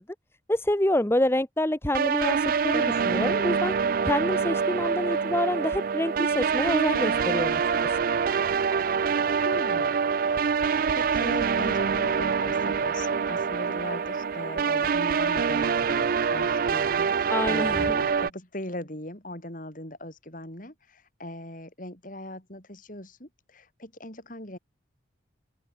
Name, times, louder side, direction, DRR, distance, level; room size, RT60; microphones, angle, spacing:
voice 1, 0.5-3.7 4.0-8.0 17.3-18.0, left 1 dB, 10° left, 0.9 m, -27 dB
sound 1, 1.9-18.3, right 6 dB, 45° right, 0.4 m, -25 dB
voice 2, 9.4-10.0 10.3-24.6, left 1 dB, 40° left, 5.8 m, -39 dB
head